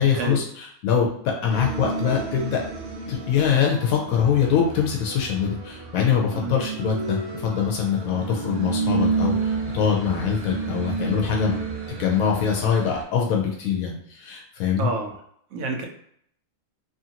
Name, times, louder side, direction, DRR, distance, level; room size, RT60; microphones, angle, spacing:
voice 1, 0.0-2.6 3.1-11.5 12.0-14.9, left 7 dB, 85° left, 0 dB, 1.0 m, -23 dB
sound 1, 1.5-13.0, right 4 dB, 55° right, 0.8 m, -30 dB
voice 2, 14.8-15.1 15.5-15.8, right 4 dB, 80° right, 3 dB, 1.1 m, -28 dB
3.0 x 2.5 x 2.8 m, 0.67 s
omnidirectional pair, 1.4 m